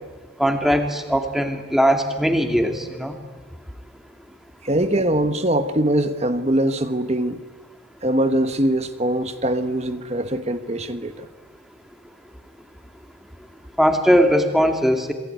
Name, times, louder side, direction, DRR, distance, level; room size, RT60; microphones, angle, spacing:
voice 1, 0.4-3.2 13.8-15.1, equal, ahead, 2.5 m, -19 dB
voice 2, 4.6-7.4 8.0-11.3, right 1 dB, 30° right, 1.2 m, -22 dB
27.5 x 22.5 x 9.4 m
head